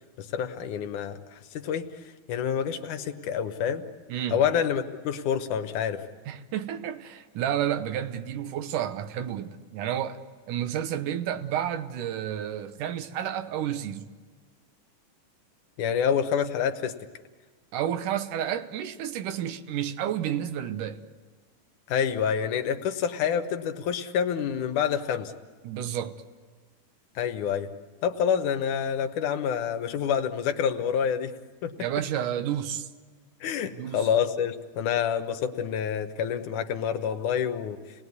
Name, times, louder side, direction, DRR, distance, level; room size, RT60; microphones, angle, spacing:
voice 1, 0.2-3.9 4.3-6.1 15.8-16.9 21.9-25.3 27.2-27.7 28.0-31.3 31.6-31.7 33.4-37.8, left 8 dB, 75° left, 2.6 m, -27 dB
voice 2, 4.1-4.4 6.3-10.2 10.5-14.1 17.7-21.0 25.6-26.2 31.8-32.9 33.8-34.0, right 10 dB, 80° right, 2.5 m, -31 dB
29.0 x 19.5 x 9.6 m
omnidirectional pair, 3.7 m